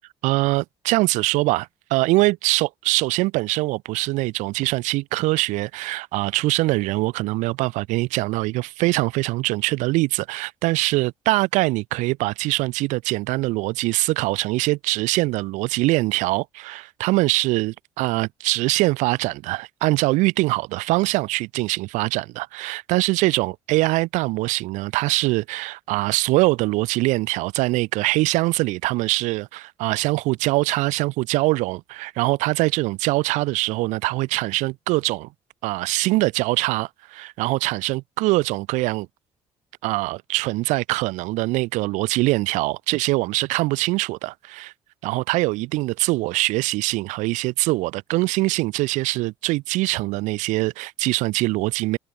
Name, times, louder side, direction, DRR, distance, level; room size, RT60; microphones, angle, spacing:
voice 1, 0.2-35.3 35.6-39.1 39.8-44.7 45.0-52.0, right 21 dB, 80° right, 7.6 m, -23 dB
supercardioid pair, 65°, 12 cm